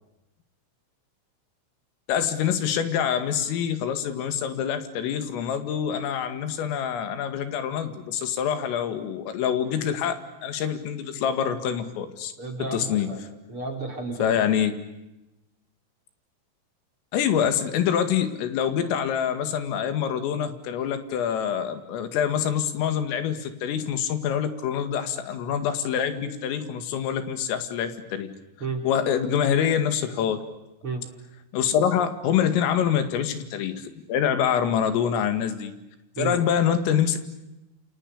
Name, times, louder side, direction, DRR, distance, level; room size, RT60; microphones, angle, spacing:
voice 1, 2.1-12.3 12.6-13.1 14.2-14.7 17.1-28.3 28.8-30.4 31.5-35.7 36.2-37.2, left 8 dB, 85° left, 9 dB, 4.7 m, -25 dB
voice 2, 12.4-14.4 28.6-28.9 30.8-31.1 36.2-36.4, right 3 dB, 30° right, 3 dB, 3.5 m, -32 dB
29.0 x 28.0 x 6.7 m, 0.95 s
omnidirectional pair, 5.8 m